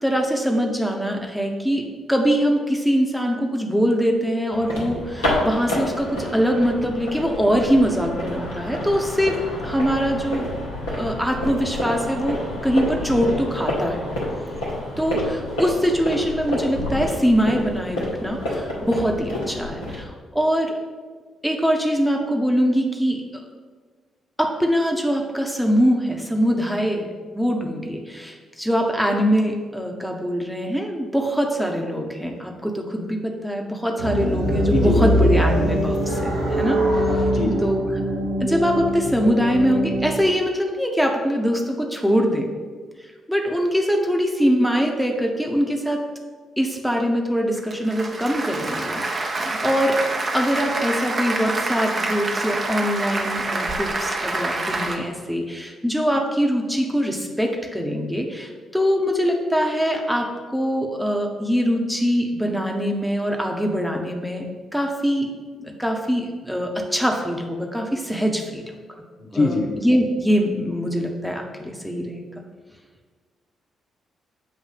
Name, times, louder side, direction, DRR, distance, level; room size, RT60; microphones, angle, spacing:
voice 1, 0.0-10.5 10.9-14.0 15.0-20.8 21.4-23.4 24.4-27.1 27.3-36.8 37.6-37.8 38.4-42.5 43.3-46.0 46.6-50.0 50.3-65.3 65.6-68.6 69.3-72.2, equal, ahead, 1 dB, 1.1 m, -23 dB
sound 1, 4.5-20.0, left 1 dB, 75° left, 1.4 m, -29 dB
sound 2, 34.0-40.2, equal, 85° right, 1.0 m, -22 dB
voice 2, 34.7-35.4 37.3-37.6 69.2-69.7, left 3 dB, 55° left, 1 dB, 0.8 m, -23 dB
Applause, 47.6-55.0, right 2 dB, 40° right, 0.9 m, -26 dB
7.4 x 2.6 x 5.8 m, 1.5 s
figure-of-eight pair, 40°, 0 cm